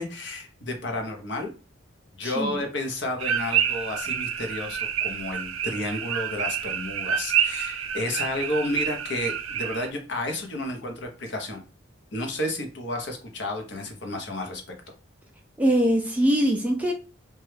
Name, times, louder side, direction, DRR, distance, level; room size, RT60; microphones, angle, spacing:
voice 1, 0.0-1.5 2.2-11.6 12.1-14.6, left 1 dB, 55° left, 3 dB, 0.7 m, -31 dB
voice 2, 2.2-2.6 15.6-16.9, equal, 5° right, 1 dB, 0.4 m, -22 dB
sound 1, 3.2-9.9, right 8 dB, 80° right, 0.4 m, -28 dB
3.0 x 2.2 x 3.2 m, 0.34 s
head